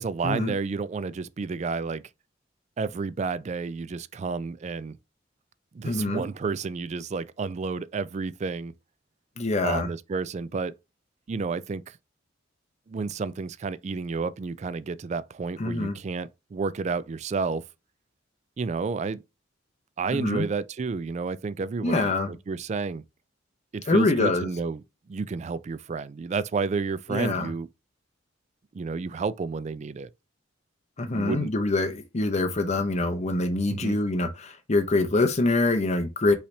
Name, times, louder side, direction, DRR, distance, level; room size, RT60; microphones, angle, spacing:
voice 1, 0.0-2.0 2.8-5.0 5.7-8.7 9.6-10.7 11.3-12.0 12.9-17.6 18.6-19.2 20.0-23.0 23.7-27.7 28.7-30.1 31.1-31.5 33.7-34.0, right 4 dB, 35° right, 0.3 m, -31 dB
voice 2, 5.8-6.2 9.4-9.9 15.6-16.0 20.1-20.5 21.8-22.3 23.9-24.5 27.1-27.5 31.0-36.3, left 2 dB, 35° left, 0.7 m, -25 dB
5.5 x 3.3 x 2.7 m
head